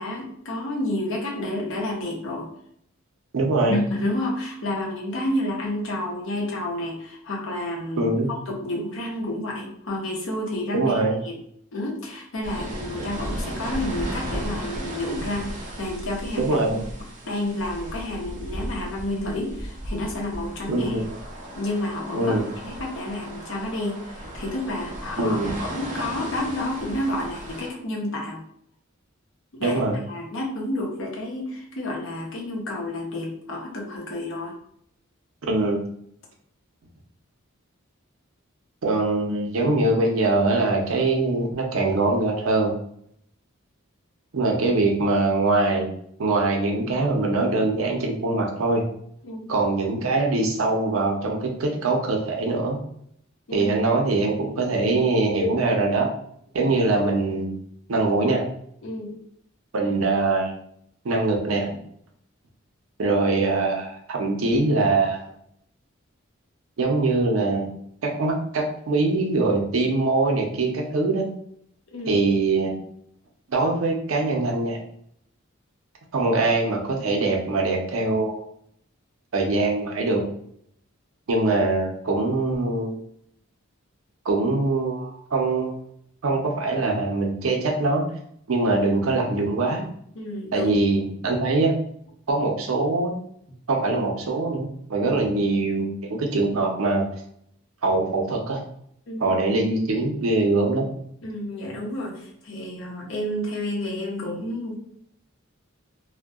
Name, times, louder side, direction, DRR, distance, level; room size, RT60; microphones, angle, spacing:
voice 1, 0.0-2.5 3.7-8.1 8.5-11.4 11.7-16.8 17.2-21.0 21.5-22.4 22.6-28.4 29.5-34.5 49.2-49.5 53.5-53.7 58.8-59.2 71.9-72.2 90.2-90.7 99.1-99.3 101.2-104.8, left 1 dB, 65° left, -1 dB, 0.7 m, -30 dB
voice 2, 3.3-3.8 8.0-8.3 10.7-11.2 16.4-16.8 20.7-21.0 22.1-22.4 25.2-25.5 29.6-30.0 35.5-35.8 38.8-42.7 44.3-45.9 46.2-48.8 49.5-52.8 53.5-56.1 56.5-57.5 57.9-58.5 59.7-60.6 61.0-61.7 63.0-65.3 66.8-67.7 68.0-71.3 72.1-72.7 73.5-74.8 76.1-78.4 79.3-80.2 81.3-83.0 84.3-85.8 86.2-88.0 88.5-89.8 90.5-91.7 92.3-93.2 93.7-97.0 97.8-98.6 99.2-100.9, right 2 dB, 85° right, 1 dB, 0.5 m, -23 dB
sound 1, 12.4-27.7, right 1 dB, 40° right, 0.5 m, -35 dB
2.6 x 2.1 x 2.3 m, 0.69 s
head